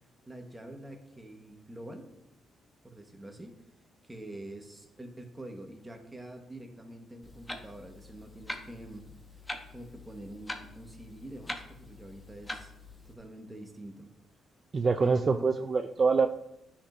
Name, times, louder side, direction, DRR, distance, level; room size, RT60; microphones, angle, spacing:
voice 1, 0.3-2.1 2.8-3.6 4.0-9.1 9.7-12.7 13.0-14.1 15.0-15.7, right 1 dB, 15° right, 3 dB, 1.3 m, -46 dB
Clock, 7.2-13.1, left 2 dB, 15° left, 1.0 m, -44 dB
voice 2, 14.7-16.3, right 4 dB, 40° right, 7 dB, 0.4 m, -25 dB
9.9 x 6.0 x 2.6 m, 0.83 s
cardioid pair, 90°, 0 cm